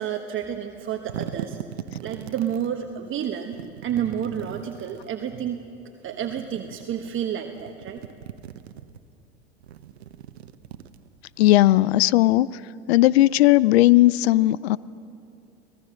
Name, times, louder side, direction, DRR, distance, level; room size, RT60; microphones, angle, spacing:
voice 1, 0.0-1.6 2.0-5.6 6.0-8.0, right 9 dB, 40° right, 4 dB, 1.3 m, -30 dB
sound 1, 0.8-2.7 3.5-5.1 6.1-7.1 7.5-9.0 9.6-11.4, right 10 dB, 90° right, 0.9 m, -39 dB
voice 2, 11.4-12.5 12.9-14.8, left 16 dB, 80° left, 21 dB, 0.5 m, -17 dB
24.5 x 18.0 x 6.4 m, 2.7 s
hypercardioid pair, 85°, 31 cm